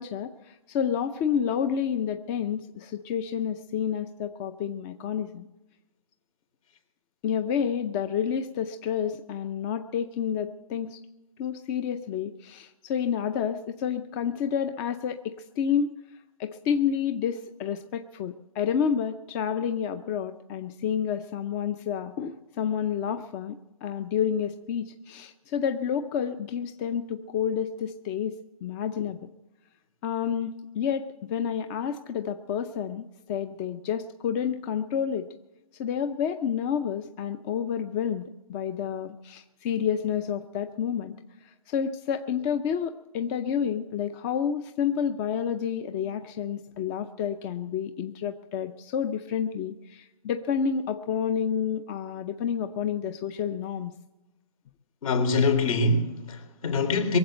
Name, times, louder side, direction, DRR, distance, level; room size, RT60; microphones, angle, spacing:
voice 1, 0.0-5.5 7.2-11.0 11.4-15.9 16.4-28.4 28.6-29.3 30.0-35.3 35.7-41.1 41.4-53.9, left 8 dB, 25° left, 0.6 m, -29 dB
voice 2, 55.0-57.2, left 3 dB, 65° left, 3.7 m, -24 dB
23.0 x 7.7 x 7.9 m
hypercardioid pair, 145°, 19 cm